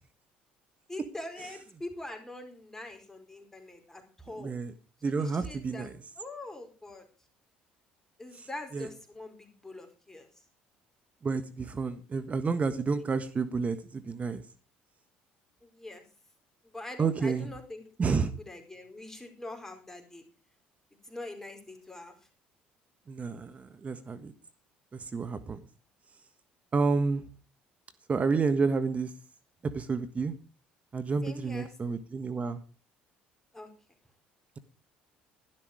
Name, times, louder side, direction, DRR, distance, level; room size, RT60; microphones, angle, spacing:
voice 1, 0.9-4.5 5.0-5.9 6.2-7.0 8.2-10.3 15.6-16.0 16.6-18.2 18.5-20.2 21.0-22.1 31.2-31.7 33.5-33.7, left 2 dB, 10° left, 5 dB, 4.7 m, -43 dB
voice 2, 4.4-4.7 5.0-5.9 8.3-8.5 8.7-8.9 11.2-14.4 17.0-17.5 18.0-18.3 23.1-24.3 24.9-25.6 26.7-27.2 28.1-29.1 29.6-30.3 30.9-32.6, right 4 dB, 35° right, 11 dB, 1.4 m, -30 dB
12.0 x 12.0 x 5.0 m, 0.34 s
hypercardioid pair, 70°, 4 cm